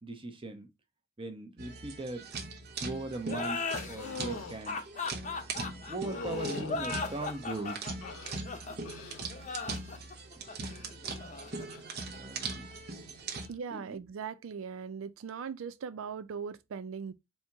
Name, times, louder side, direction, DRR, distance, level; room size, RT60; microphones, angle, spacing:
voice 1, 0.0-0.7 1.2-2.3 2.8-4.8 5.5-8.0 10.4-10.7 12.1-12.7 13.7-14.0, right 2 dB, 25° right, 0.8 m, -40 dB
sound 1, 1.6-13.5, right 3 dB, 55° right, 0.9 m, -41 dB
sound 2, 3.2-12.5, left 4 dB, 35° left, 0.7 m, -38 dB
sound 3, 4.0-4.6 6.0-6.8 7.5-8.4 8.8-9.3 9.6-10.1 11.6-11.8, left 3 dB, 75° left, 0.5 m, -42 dB
voice 2, 13.5-17.1, right 6 dB, 85° right, 0.4 m, -39 dB
4.3 x 2.8 x 3.4 m
head